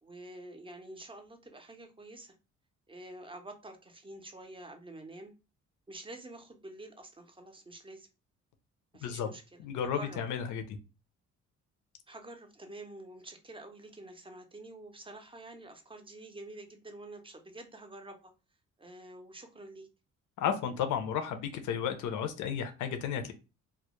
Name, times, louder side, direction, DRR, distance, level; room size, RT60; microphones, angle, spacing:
voice 1, 0.0-2.3 2.9-5.3 5.9-8.1 8.9-10.2 12.1-18.3 18.8-19.9, right 2 dB, 15° right, 5 dB, 0.5 m, -48 dB
voice 2, 9.0-9.3 9.6-10.8 20.4-23.3, left 8 dB, 80° left, 8 dB, 0.5 m, -33 dB
2.2 x 2.1 x 2.9 m, 0.30 s
cardioid pair, 90°, 30 cm